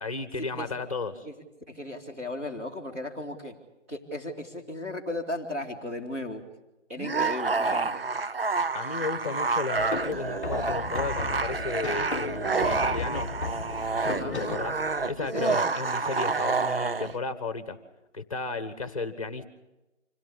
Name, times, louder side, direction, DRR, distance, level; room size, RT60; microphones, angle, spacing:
voice 1, 0.0-1.3 8.7-13.3 13.9-14.8 15.1-17.8 18.1-19.5, left 3 dB, 30° left, 11 dB, 1.7 m, -34 dB
voice 2, 1.7-3.5 3.9-6.4 6.9-8.0 14.0-14.4 15.2-15.7, left 1 dB, 10° right, -5 dB, 2.4 m, -36 dB
sound 1, 7.0-17.2, right 4 dB, 50° right, 0.7 m, -29 dB
sound 2, 9.8-15.3, left 4 dB, 10° left, 2.3 m, -35 dB
26.0 x 17.0 x 8.6 m, 1.0 s
figure-of-eight pair, 170°, 36 cm